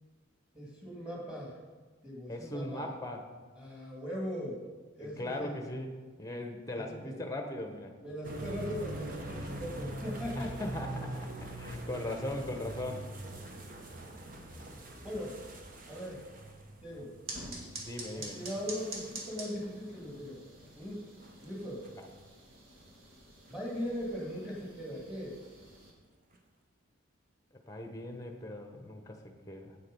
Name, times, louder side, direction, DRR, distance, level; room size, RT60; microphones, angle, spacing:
voice 1, 0.5-1.5 2.0-2.8 3.5-4.6 5.0-5.6 6.7-7.2 8.0-10.7 15.0-15.4 15.9-16.2 16.8-17.2 18.1-20.4 20.8-21.1 21.4-21.9 23.5-25.4, equal, 5° right, -4 dB, 2.4 m, -39 dB
voice 2, 2.3-3.2 5.0-5.9 6.2-7.9 10.3-13.1 17.8-18.4 27.7-29.2 29.5-29.8, left 1 dB, 15° left, 4 dB, 0.9 m, -39 dB
sound 1, 8.2-22.0 22.8-22.9 23.5-24.1 24.4-24.5 26.3-26.4, right 1 dB, 40° right, 1.0 m, -43 dB
sound 2, 17.3-25.9, right 2 dB, 75° right, 1.8 m, -47 dB
8.4 x 7.5 x 5.4 m, 1.4 s
head